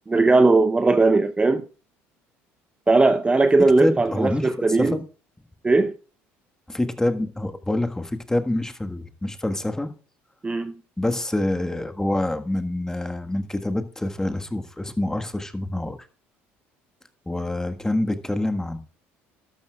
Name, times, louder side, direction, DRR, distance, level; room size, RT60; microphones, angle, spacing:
voice 1, 0.1-1.7 2.9-5.0 5.6-5.9 10.4-10.8, right 3 dB, 20° right, 0.7 m, -18 dB
voice 2, 3.8-4.5 4.8-5.0 6.7-9.9 11.0-16.0 17.3-18.8, left 1 dB, 10° left, 1.4 m, -26 dB
12.0 x 12.0 x 2.3 m
supercardioid pair, 75°, 6 cm